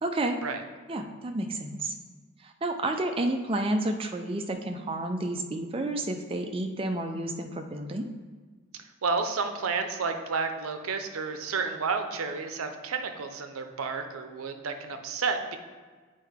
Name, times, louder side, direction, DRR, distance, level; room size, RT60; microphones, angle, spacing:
voice 1, 0.0-0.4 0.9-1.9 2.4-8.1, right 1 dB, 25° right, 5 dB, 0.4 m, -30 dB
voice 2, 9.0-15.6, right 4 dB, 85° right, 7 dB, 0.6 m, -31 dB
7.5 x 4.6 x 3.5 m, 1.4 s
head